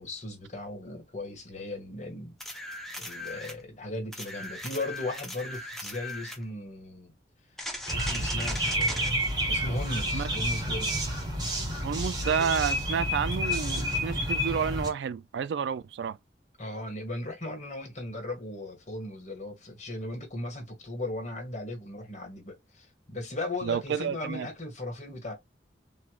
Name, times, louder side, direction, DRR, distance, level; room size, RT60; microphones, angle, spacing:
voice 1, 0.0-2.4 3.0-7.1 7.9-11.0 16.6-25.3, left 2 dB, 40° left, 1.6 m, -37 dB
sound 1, 2.4-3.6 4.1-6.4 7.6-9.1 12.6-12.7, left 1 dB, ahead, 0.7 m, -38 dB
sound 2, 7.9-14.9, equal, 25° right, 1.1 m, -29 dB
voice 2, 11.8-16.2 23.6-24.5, right 7 dB, 75° right, 0.3 m, -30 dB
3.2 x 2.8 x 2.3 m
head